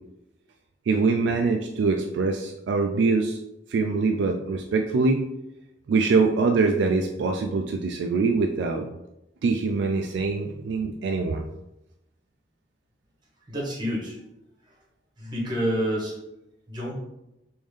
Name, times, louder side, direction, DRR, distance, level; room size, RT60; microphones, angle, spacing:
voice 1, 0.9-3.4 3.7-5.2 5.9-8.9 9.4-11.4, right 4 dB, 70° right, 4 dB, 0.3 m, -23 dB
voice 2, 13.5-14.2 15.2-16.1 16.7-16.9, equal, 25° right, -4 dB, 1.1 m, -28 dB
3.5 x 2.6 x 3.2 m, 0.90 s
head